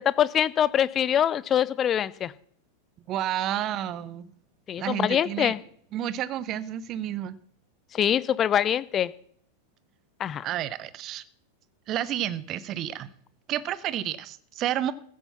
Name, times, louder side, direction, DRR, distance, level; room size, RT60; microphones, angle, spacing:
voice 1, 0.0-2.3 4.7-5.6 7.9-9.1 10.2-10.5, left 9 dB, 25° left, 19 dB, 0.6 m, -24 dB
voice 2, 3.1-4.3 4.8-5.6 5.9-7.4 10.4-11.2 11.9-13.1 13.5-14.9, right 11 dB, 35° right, 18 dB, 0.8 m, -30 dB
15.5 x 8.7 x 5.8 m, 0.63 s
figure-of-eight pair, 90°, 0 cm